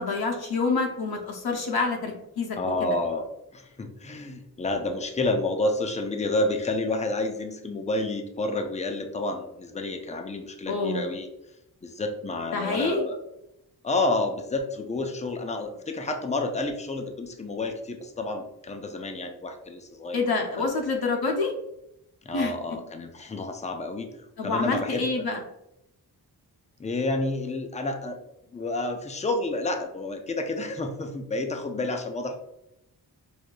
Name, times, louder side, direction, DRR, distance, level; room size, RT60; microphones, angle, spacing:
voice 1, 0.0-2.9 10.7-11.1 12.5-13.0 20.1-21.5 22.3-22.5 24.4-25.4, left 3 dB, 70° left, 1 dB, 0.7 m, -27 dB
voice 2, 2.6-3.3 3.5-11.3 11.8-13.2 13.8-20.3 20.6-20.7 22.2-24.1 24.4-25.3 26.8-28.2 28.5-32.4, left 2 dB, 20° left, 5 dB, 0.4 m, -29 dB
4.7 x 2.7 x 2.2 m, 0.85 s
wide cardioid pair, 95°, 40 cm